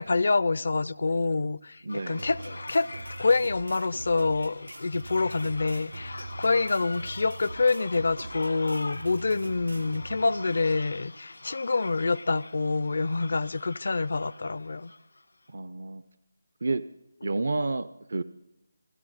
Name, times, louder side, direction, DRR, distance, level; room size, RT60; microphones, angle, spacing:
voice 1, 0.0-2.9 3.2-14.9, left 3 dB, 60° left, 0.5 m, -27 dB
sound 1, 1.9-15.2, left 2 dB, 80° left, 1.3 m, -44 dB
voice 2, 1.9-2.2 15.5-16.0 16.6-16.8 17.2-18.2, right 3 dB, 60° right, 0.5 m, -30 dB
sound 2, 2.2-10.2, right 2 dB, 75° right, 4.0 m, -42 dB
26.0 x 13.5 x 4.0 m
figure-of-eight pair, 155°, 0 cm